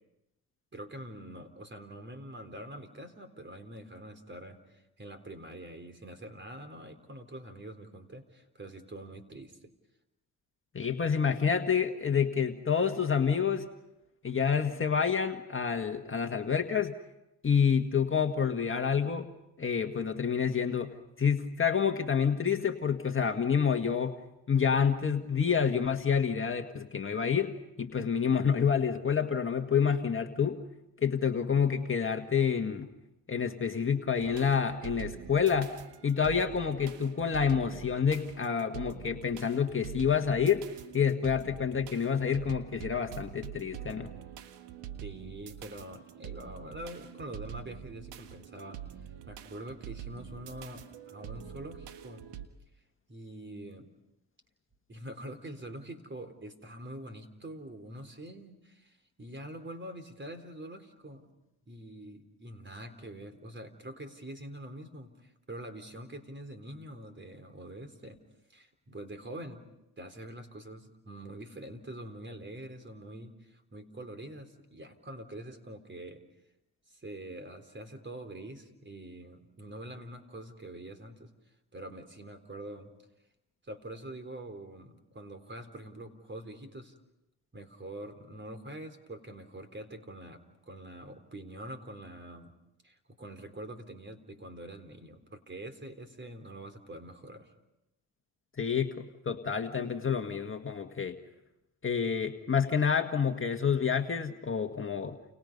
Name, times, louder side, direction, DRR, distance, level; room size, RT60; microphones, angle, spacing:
voice 1, 0.7-9.7 45.0-52.2 53.1-53.9 54.9-61.3 61.7-68.2 68.5-69.7 70.0-76.2 76.9-81.3 81.7-82.9 83.6-86.9 87.5-92.5 92.8-97.5, right 1 dB, 25° right, 8 dB, 4.0 m, -45 dB
voice 2, 10.7-13.7 14.2-16.9 17.4-19.3 19.6-20.9 21.2-24.2 24.5-27.5 27.8-30.6 31.0-32.9 33.3-35.8 36.0-40.7 40.9-44.1 98.6-101.2 101.8-105.2, left 6 dB, 30° left, 5 dB, 1.8 m, -28 dB
sound 1, 34.2-52.5, right 10 dB, 80° right, 1.8 m, -45 dB
30.0 x 30.0 x 5.5 m, 0.91 s
supercardioid pair, 75°, 41 cm